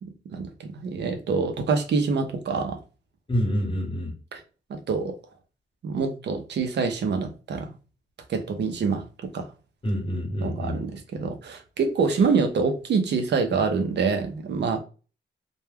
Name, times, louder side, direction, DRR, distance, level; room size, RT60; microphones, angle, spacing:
voice 1, 0.0-2.8 4.3-4.4 4.7-5.1 5.8-7.7 8.3-9.5 10.4-14.8, right 5 dB, 60° right, 0.6 m, -26 dB
voice 2, 3.3-4.1 9.8-10.8, equal, 25° left, 1.0 m, -27 dB
2.2 x 2.1 x 3.2 m
wide cardioid pair, 130°, 20 cm